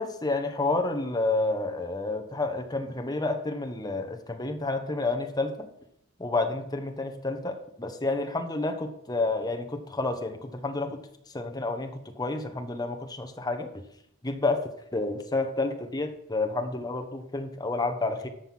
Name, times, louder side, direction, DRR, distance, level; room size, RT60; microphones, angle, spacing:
voice 1, 0.0-5.7 6.2-11.0 11.3-13.7 14.2-14.6 14.9-18.3, left 2 dB, 20° left, 5 dB, 1.1 m, -30 dB
13.0 x 5.7 x 6.0 m, 0.76 s
head